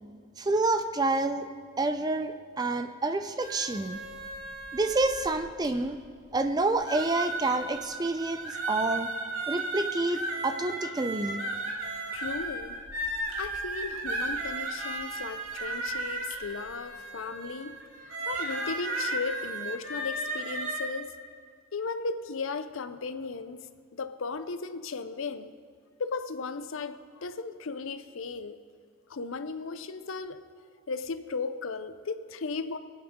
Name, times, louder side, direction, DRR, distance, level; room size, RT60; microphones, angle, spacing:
voice 1, 0.4-1.5 1.8-4.0 4.7-6.0 6.3-9.1 9.5-11.4, right 2 dB, 20° right, 9 dB, 0.4 m, -28 dB
sound 1, 3.4-5.9 6.4-6.5 6.8-20.9, right 2 dB, 80° right, 2.1 m, -35 dB
voice 2, 12.1-12.8 13.4-17.8 18.1-21.1 21.7-23.6 23.9-25.5 26.0-28.6 29.1-30.4 30.9-32.8, left 4 dB, 70° left, 11 dB, 0.6 m, -36 dB
22.5 x 8.7 x 3.6 m, 2.1 s
head